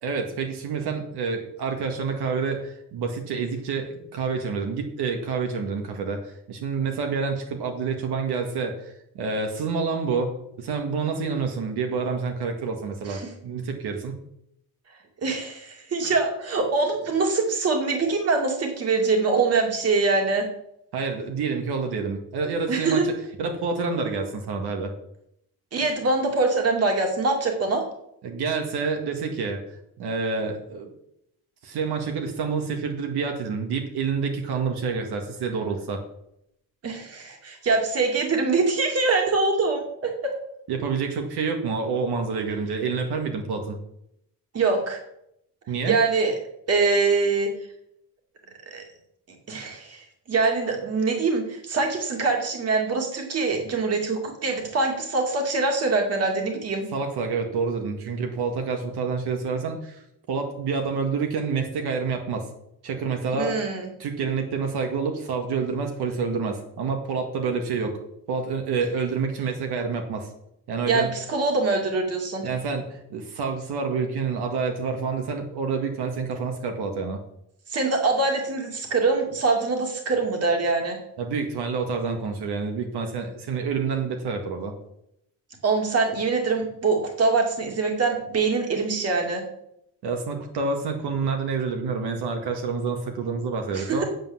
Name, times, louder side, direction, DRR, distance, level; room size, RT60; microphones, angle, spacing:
voice 1, 0.0-14.2 20.9-23.1 23.4-24.9 28.2-30.9 31.6-36.0 40.7-43.8 45.7-46.0 56.9-60.0 60.3-62.5 62.8-63.7 64.0-68.0 68.3-70.3 70.7-71.1 72.4-77.2 81.2-84.8 90.0-94.0, right 5 dB, 75° right, 4 dB, 1.9 m, -28 dB
voice 2, 15.2-20.5 22.7-23.1 25.7-27.8 36.8-40.3 44.5-45.0 45.9-46.3 46.7-47.5 48.7-48.8 49.5-56.8 63.3-63.9 70.9-72.5 77.7-81.0 85.6-89.4 93.7-94.0, right 3 dB, 40° right, 3 dB, 2.3 m, -24 dB
8.9 x 7.8 x 7.2 m, 0.76 s
cardioid pair, 175°, 39 cm